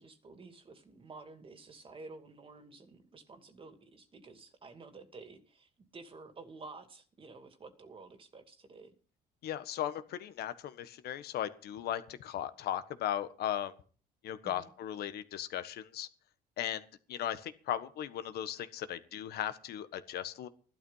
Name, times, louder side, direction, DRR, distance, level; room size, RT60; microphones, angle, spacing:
voice 1, 0.0-8.9 14.4-14.7, right 3 dB, 30° right, 8 dB, 2.5 m, -51 dB
voice 2, 9.4-13.7 14.2-16.1 16.6-16.8 17.1-20.5, left 11 dB, 70° left, 12 dB, 1.5 m, -37 dB
14.5 x 12.0 x 5.6 m, 0.40 s
cardioid pair, 110°, 17 cm